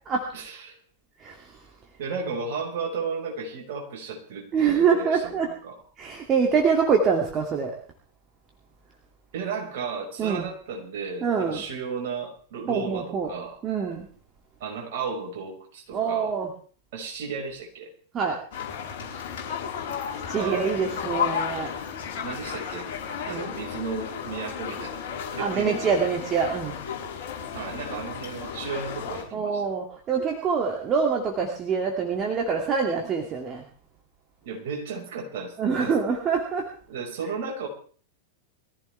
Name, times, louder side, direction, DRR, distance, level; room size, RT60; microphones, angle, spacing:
voice 1, 0.3-0.8 2.0-5.8 9.3-13.6 14.6-16.3 16.9-17.9 20.3-21.0 22.2-22.9 23.3-25.0 25.3-26.0 27.5-29.7 34.4-35.9 36.9-37.7, right 5 dB, 55° right, 1 dB, 5.6 m, -34 dB
voice 2, 1.2-1.6 4.5-5.5 6.0-7.7 10.2-10.5 11.2-11.6 12.7-13.3 13.6-14.1 15.9-16.5 18.1-18.4 20.3-21.8 23.3-23.5 25.4-26.8 29.3-33.6 35.6-36.7, right 6 dB, 25° right, 1 dB, 2.6 m, -25 dB
sound 1, 18.5-29.2, left 7 dB, 50° left, 4.5 m, -33 dB
22.5 x 15.0 x 3.5 m, 0.43 s
figure-of-eight pair, 90°, 0 cm